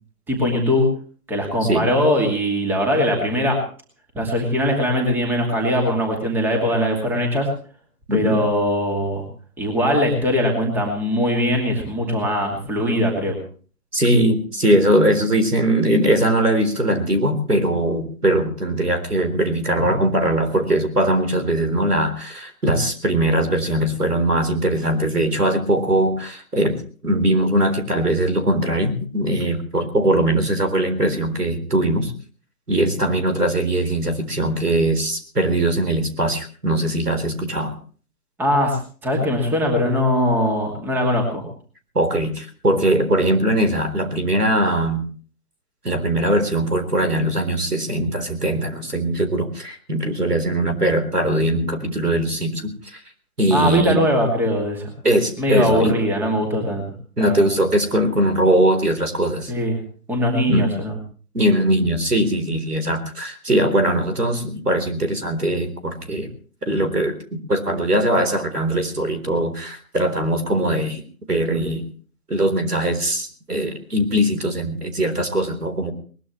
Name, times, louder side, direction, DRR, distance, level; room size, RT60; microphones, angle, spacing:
voice 1, 0.3-0.9 1.3-3.6 4.1-7.5 8.1-9.3 9.6-13.4 19.8-19.9 38.4-41.5 53.5-54.9 55.4-56.9 57.2-57.5 59.5-59.8 60.1-60.9 66.1-66.2, equal, 5° right, 2 dB, 2.5 m, -21 dB
voice 2, 13.9-32.1 32.7-37.7 41.9-45.1 45.8-53.0 53.4-54.0 55.0-55.9 57.2-59.5 60.5-60.7 61.3-66.3 66.6-71.0 71.3-71.8 72.3-75.9, right 1 dB, 90° right, 8 dB, 4.0 m, -21 dB
21.0 x 20.0 x 3.2 m, 0.42 s
figure-of-eight pair, 145°, 45 cm